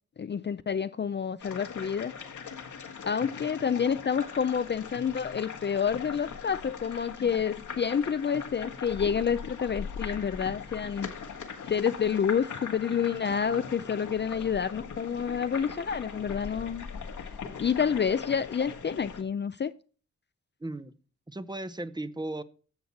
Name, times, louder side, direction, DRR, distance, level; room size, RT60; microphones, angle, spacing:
voice 1, 0.2-2.1 3.1-11.1 11.6-16.9 17.6-19.7, left 7 dB, 35° left, 0.4 m, -29 dB
sound 1, 1.4-19.2, left 6 dB, 85° left, 1.7 m, -40 dB
voice 2, 20.6-20.9 21.3-22.4, right 2 dB, 15° right, 0.8 m, -36 dB
10.5 x 7.0 x 5.8 m
wide cardioid pair, 95°, 30 cm